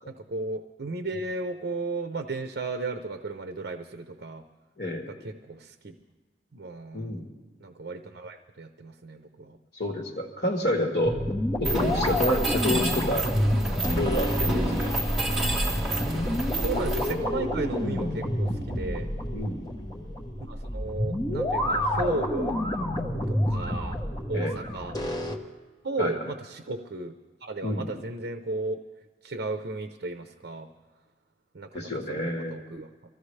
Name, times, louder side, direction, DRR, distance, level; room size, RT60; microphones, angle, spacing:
voice 1, 0.1-4.4 5.1-5.9 6.5-7.2 7.6-9.6 16.6-19.1 20.4-22.6 23.3-24.0 24.3-25.0 25.8-27.1 27.4-28.8 29.2-30.7 31.5-32.9, right 3 dB, 65° right, 6 dB, 0.7 m, -35 dB
voice 2, 4.8-5.1 6.9-7.3 9.7-11.2 11.6-13.3 13.9-14.9 16.0-16.2 19.3-19.7 24.3-24.6 26.0-26.1 27.6-27.9 31.7-32.6, left 1 dB, 55° left, 0 dB, 1.5 m, -29 dB
sound 1, 11.0-25.4, left 1 dB, 20° left, 1.1 m, -29 dB
Mechanisms, 11.6-17.1, right 1 dB, ahead, 3.1 m, -29 dB
24.5 x 14.5 x 3.3 m, 1.4 s
head